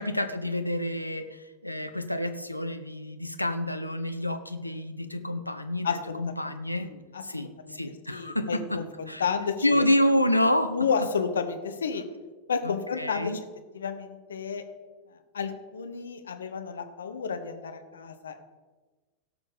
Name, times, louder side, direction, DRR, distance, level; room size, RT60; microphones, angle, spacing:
voice 1, 0.0-6.9 7.2-9.2 9.6-11.1 12.6-13.4, left 1 dB, 90° left, 8 dB, 0.8 m, -28 dB
voice 2, 5.8-6.5 6.8-7.8 8.1-9.9 10.7-12.0 12.5-13.3 13.7-14.6 15.3-18.4, left 6 dB, 70° left, 7 dB, 1.2 m, -31 dB
17.0 x 6.1 x 5.1 m, 1.3 s
figure-of-eight pair, 90°, 0 cm